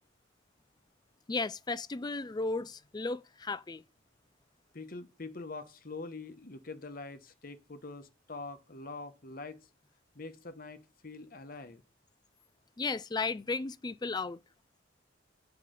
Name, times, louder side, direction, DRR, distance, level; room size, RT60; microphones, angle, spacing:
voice 1, 1.3-3.8 12.8-14.4, left 3 dB, 20° left, 0.4 m, -34 dB
voice 2, 4.7-9.7 10.1-11.8, left 3 dB, 45° left, 1.1 m, -44 dB
8.3 x 4.8 x 6.7 m
head